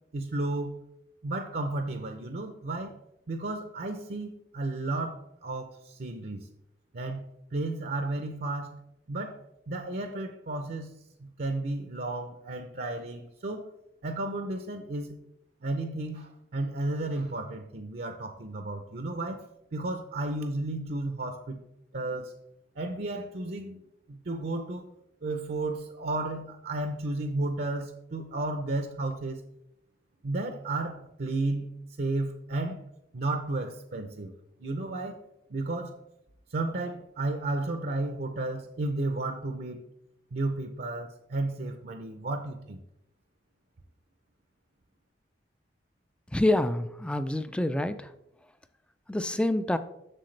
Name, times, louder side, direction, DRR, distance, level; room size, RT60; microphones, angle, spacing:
voice 1, 0.1-0.8 1.2-2.9 3.3-6.5 6.9-8.8 9.1-9.4 9.7-10.9 11.2-13.6 14.0-15.2 15.6-19.5 19.7-21.6 21.9-22.3 22.8-23.8 24.1-24.9 25.2-29.4 30.2-32.8 33.1-34.3 34.6-35.2 35.5-35.9 36.5-39.8 40.3-42.8, right 2 dB, 55° right, 6 dB, 0.6 m, -33 dB
voice 2, 46.3-48.1 49.1-49.8, left 1 dB, 5° left, 11 dB, 0.3 m, -27 dB
7.7 x 6.5 x 3.2 m, 0.81 s
head